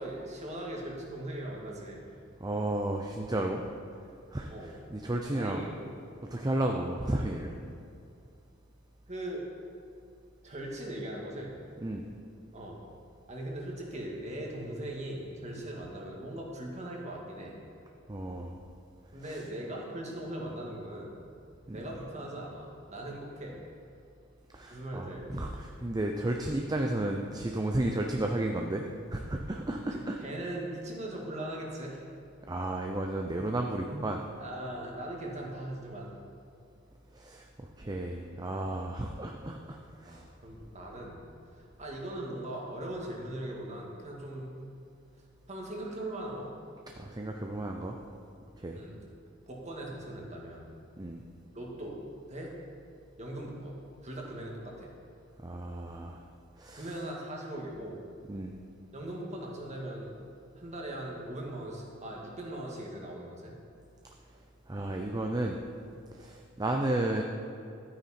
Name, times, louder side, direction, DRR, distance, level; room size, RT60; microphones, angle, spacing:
voice 1, 0.0-2.1 4.5-4.8 5.3-5.8 9.1-9.5 10.4-11.6 12.5-12.8 13.3-17.6 19.1-21.2 21.7-23.6 24.7-25.5 29.9-32.0 34.4-36.2 40.1-41.2 41.5-44.7 45.5-46.5 47.8-47.9 48.7-49.0 49.5-50.7 51.5-52.0 52.3-52.5 53.2-54.9 56.7-58.0 58.9-60.1 60.6-63.6, right 1 dB, 35° right, -1 dB, 1.9 m, -40 dB
voice 2, 2.4-3.6 4.3-4.5 4.9-5.7 6.2-7.6 11.8-12.0 18.1-18.6 19.3-19.4 21.7-21.8 24.5-28.8 29.1-30.2 32.5-34.2 37.1-40.2 47.0-48.0 48.6-48.8 51.0-51.2 55.4-56.2 56.6-56.9 58.3-58.5 64.7-65.6 66.1-67.2, right 1 dB, 20° right, 2 dB, 0.6 m, -33 dB
13.0 x 9.1 x 4.3 m, 2.5 s
head